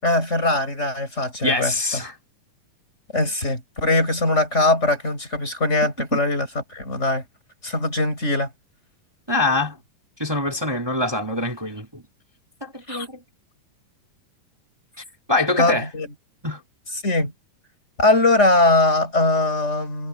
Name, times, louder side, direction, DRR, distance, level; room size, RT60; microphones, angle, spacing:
voice 1, 0.0-2.0 3.1-7.2 7.6-8.5 12.9-13.1 15.6-16.1 17.0-17.3 18.0-20.1, left 2 dB, 20° left, 7.2 m, -21 dB
voice 2, 1.4-2.1 6.1-6.2 9.3-9.8 10.2-12.0 12.6-13.2 15.3-15.9 16.4-16.6, left 2 dB, 10° right, 1.8 m, -24 dB
omnidirectional pair, 3.8 m